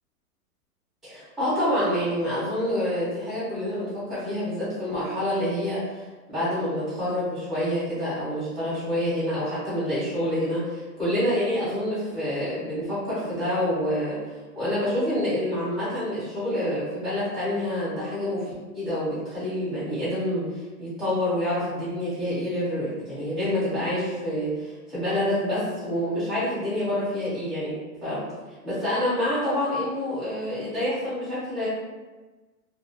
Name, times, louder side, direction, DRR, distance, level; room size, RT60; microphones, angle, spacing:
voice 1, 1.0-6.0 6.3-14.2 14.5-18.5 18.7-20.4 20.8-27.7 28.0-28.2 28.6-31.7, left 1 dB, ahead, -15 dB, 0.6 m, -27 dB
2.5 x 2.2 x 2.5 m, 1.2 s
hypercardioid pair, 150°, 46 cm